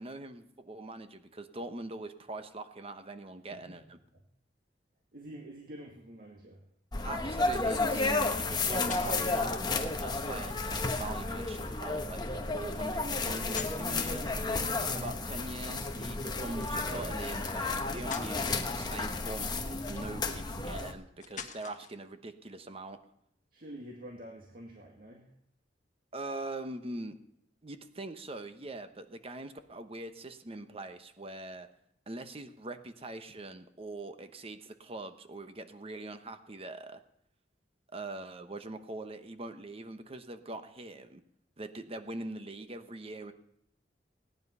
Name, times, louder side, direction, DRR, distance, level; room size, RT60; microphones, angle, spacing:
voice 1, 0.0-4.0 7.0-14.3 14.9-23.0 26.1-27.1 27.6-31.7 32.1-37.0 37.9-41.2 41.6-43.3, right 2 dB, 35° right, 9 dB, 1.1 m, -42 dB
voice 2, 3.5-3.8 4.1-4.2 5.1-6.6 14.8-15.1 23.5-25.3, right 1 dB, 55° right, 0 dB, 1.9 m, -48 dB
sound 1, 6.9-20.9, left 3 dB, 25° left, 1.1 m, -32 dB
sound 2, 8.9-9.5 11.4-11.9 13.3-14.6 16.5-16.8 17.5-17.6 18.0-18.4 19.7-20.3 21.2-22.0, left 7 dB, 45° left, 1.3 m, -44 dB
18.0 x 10.5 x 5.6 m, 0.76 s
head